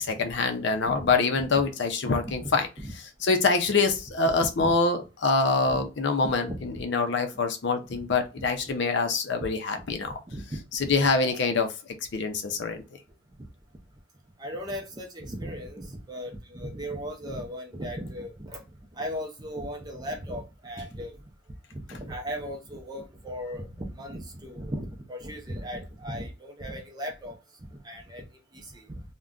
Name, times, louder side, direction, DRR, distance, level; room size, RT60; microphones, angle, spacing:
voice 1, 0.0-2.7 3.2-10.1 10.7-11.7 12.1-12.8, left 4 dB, 55° left, 0.5 m, -25 dB
voice 2, 2.2-2.9 3.7-3.8 4.6-4.7 5.7-5.8 6.5-6.8 7.9-8.0 8.4-8.5 9.8-11.4 12.7-12.8 14.4-18.6 18.9-21.2 21.7-27.4 27.8-28.2 28.5-29.0, equal, 20° right, 0.5 m, -37 dB
2.4 x 2.2 x 3.5 m
head